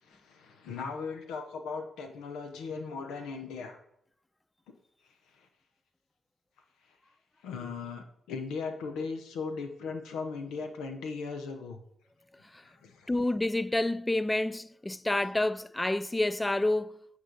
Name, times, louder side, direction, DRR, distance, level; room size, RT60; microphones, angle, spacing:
voice 1, 0.1-3.8 7.4-11.8 12.6-13.1, left 4 dB, 90° left, 0.8 m, -38 dB
voice 2, 13.1-17.0, left 2 dB, 15° left, 0.4 m, -29 dB
8.7 x 4.9 x 4.0 m
supercardioid pair, 50°, 0 cm